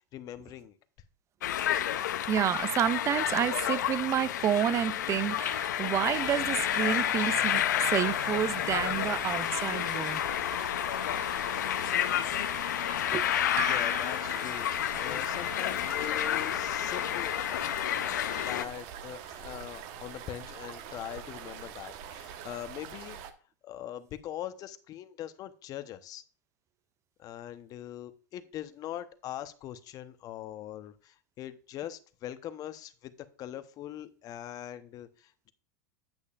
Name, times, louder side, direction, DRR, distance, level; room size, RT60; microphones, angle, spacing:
voice 1, 0.1-0.8 13.6-14.7 15.0-17.4 18.3-23.2 23.6-26.2 27.2-33.1 33.4-35.5, left 12 dB, 40° left, 0.9 m, -42 dB
sound 1, 1.4-18.6, left 11 dB, 80° left, 0.6 m, -30 dB
voice 2, 2.3-10.2 13.1-13.3, right 10 dB, 30° right, 0.4 m, -29 dB
sound 2, 6.0-23.3, right 8 dB, 55° right, 1.1 m, -44 dB
sound 3, 13.6-15.1, right 7 dB, 70° right, 2.2 m, -40 dB
8.8 x 8.1 x 2.4 m
hypercardioid pair, 105°, 10 cm